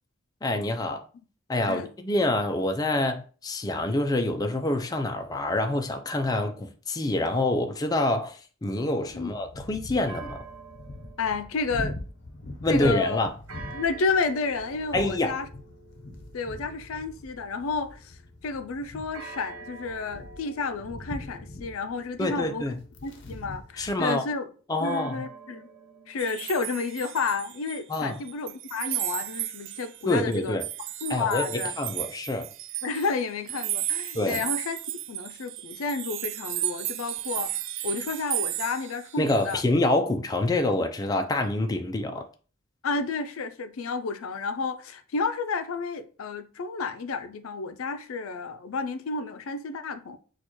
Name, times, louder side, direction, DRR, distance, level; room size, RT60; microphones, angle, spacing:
voice 1, 0.4-1.1 1.5-10.4 12.6-13.3 14.9-15.4 22.2-22.8 23.8-24.2 24.7-25.2 27.9-28.2 30.1-30.6 31.1-32.5 34.1-34.4 39.2-42.2, left 2 dB, 20° left, 0.4 m, -26 dB
sound 1, 9.1-24.0, left 1 dB, 60° left, 0.8 m, -42 dB
sound 2, 10.1-12.5 13.5-18.4 19.1-24.0 24.8-27.3, right 4 dB, 80° right, 0.9 m, -47 dB
voice 2, 11.2-12.0 12.7-13.2 13.7-15.5 16.3-18.2 18.4-22.7 23.0-24.5 24.8-25.7 26.1-30.6 31.0-31.8 32.8-34.8 35.1-37.5 37.8-39.6 42.8-50.2, left 4 dB, 80° left, 0.5 m, -31 dB
sound 3, 26.2-28.0 28.3-39.6, right 14 dB, 60° right, 0.4 m, -34 dB
6.4 x 2.3 x 3.0 m
head